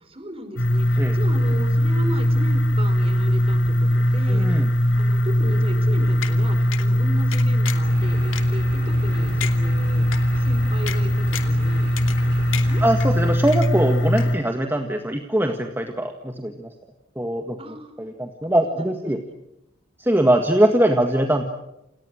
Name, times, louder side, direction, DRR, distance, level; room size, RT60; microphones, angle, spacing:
voice 1, 0.0-4.6 4.9-10.1 10.3-12.8 17.6-17.9 18.7-19.1, right 1 dB, 30° right, 8 dB, 4.9 m, -36 dB
sound 1, 0.6-14.4, equal, 65° left, 6.0 m, -20 dB
voice 2, 4.3-4.7 12.8-16.7 17.2-17.6 18.0-19.2 20.0-21.4, right 1 dB, 10° right, 4 dB, 1.8 m, -22 dB
sound 2, 6.2-6.3 6.7-6.9 7.3-7.9 8.3-8.4 8.9-9.0 9.4-9.6 10.1-10.2 10.9-11.0 11.3-11.6 12.0-12.3 12.5-13.1 13.5-13.9 14.2-14.3, left 9 dB, 85° left, 2.6 m, -32 dB
sound 3, 7.8-13.3, right 1 dB, 60° right, 2.7 m, -36 dB
29.0 x 28.5 x 6.4 m, 0.87 s
head